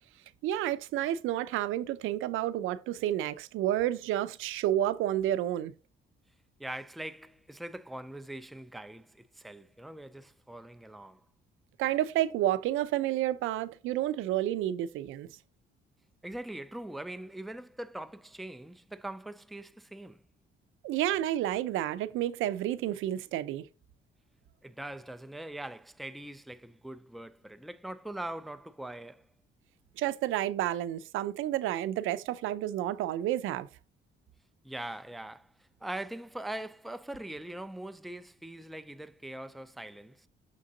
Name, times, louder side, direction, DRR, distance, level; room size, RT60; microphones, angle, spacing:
voice 1, 0.4-5.7 11.8-15.3 20.8-23.7 30.0-33.7, right 13 dB, 90° right, 0.5 m, -30 dB
voice 2, 6.6-11.2 16.2-20.2 24.6-29.3 34.6-40.3, right 1 dB, ahead, 0.3 m, -42 dB
6.6 x 3.7 x 3.8 m
cardioid pair, 90°, 20 cm